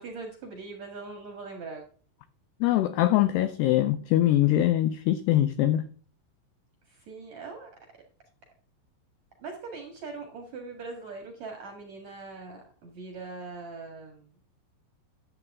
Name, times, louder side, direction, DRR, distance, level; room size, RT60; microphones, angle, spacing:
voice 1, 0.0-1.8 6.9-7.7 9.4-14.2, right 4 dB, 55° right, 2.0 m, -41 dB
voice 2, 2.6-5.9, left 13 dB, 85° left, 2.3 m, -23 dB
12.0 x 8.0 x 3.6 m
omnidirectional pair, 5.5 m